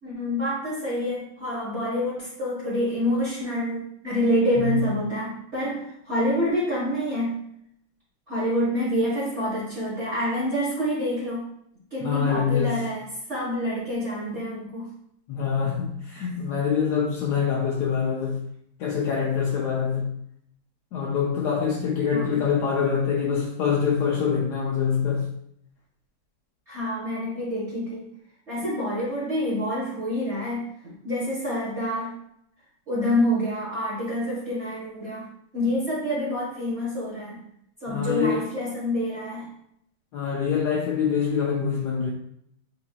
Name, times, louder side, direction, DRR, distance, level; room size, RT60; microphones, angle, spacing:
voice 1, 0.0-7.4 8.3-11.4 11.9-14.9 22.1-22.3 26.7-28.1 28.5-32.1 32.9-37.4 37.8-39.5, equal, 40° right, 1.4 m, -27 dB
voice 2, 4.6-4.9 12.0-12.8 15.3-18.4 18.8-20.1 20.9-25.3 37.9-38.4 40.1-42.1, left 7 dB, 70° left, 1.0 m, -25 dB
8.0 x 2.9 x 2.2 m
omnidirectional pair, 2.2 m